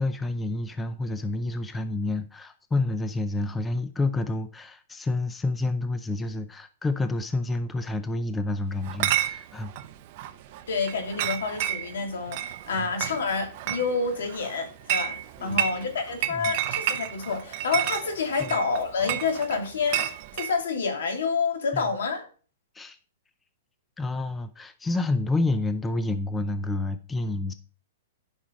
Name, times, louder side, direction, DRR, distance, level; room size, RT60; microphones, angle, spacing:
voice 1, 0.0-9.7 12.7-12.9 15.4-15.6 16.3-16.5 18.4-18.5 21.7-21.8 22.7-23.0 24.0-27.5, left 2 dB, 10° left, 0.5 m, -29 dB
Chatter / Chink clink, 8.8-20.5, right 12 dB, 35° right, 0.7 m, -31 dB
voice 2, 10.7-22.2, left 4 dB, 85° left, 2.8 m, -28 dB
10.5 x 5.6 x 5.1 m
hypercardioid pair, 165°, 0 cm